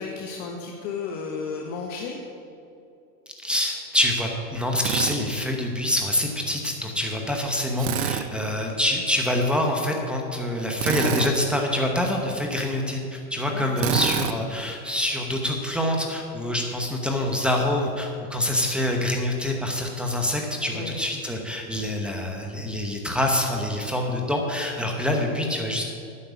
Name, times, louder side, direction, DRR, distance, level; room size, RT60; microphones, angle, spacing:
voice 1, 0.0-2.2 8.3-8.6 13.5-13.9 20.7-21.0, left 5 dB, 45° left, 1 dB, 1.3 m, -34 dB
voice 2, 3.4-25.8, left 1 dB, ahead, 0 dB, 1.0 m, -26 dB
Drill, 4.8-5.2 7.8-8.3 10.8-11.3 13.8-14.3, right 9 dB, 90° right, 0.9 m, -26 dB
9.6 x 6.7 x 8.3 m, 2.6 s
hypercardioid pair, 125°, 47 cm